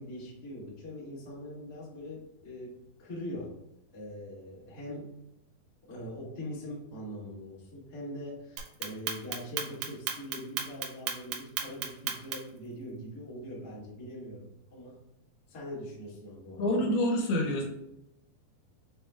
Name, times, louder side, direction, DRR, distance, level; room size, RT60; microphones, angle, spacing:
voice 1, 0.0-3.6 3.9-5.2 5.9-15.0 15.5-16.8, equal, 65° left, -7 dB, 0.9 m, -42 dB
Clock, 8.6-12.6, right 8 dB, 85° right, 2.7 m, -34 dB
voice 2, 16.6-17.6, left 1 dB, 80° left, 0 dB, 2.8 m, -27 dB
6.8 x 2.3 x 3.4 m, 0.81 s
omnidirectional pair, 4.8 m